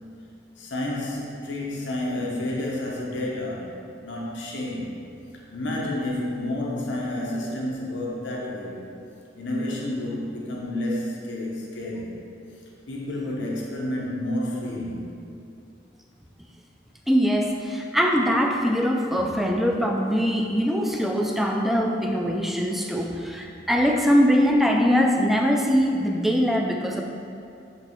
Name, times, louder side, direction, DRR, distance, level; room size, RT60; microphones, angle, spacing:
voice 1, 0.6-3.7 4.0-4.9 5.3-8.8 9.4-12.2 12.9-15.1, left 1 dB, 85° left, -3 dB, 0.9 m, -30 dB
voice 2, 17.1-27.0, equal, ahead, 1 dB, 0.4 m, -22 dB
8.0 x 3.3 x 4.5 m, 2.5 s
head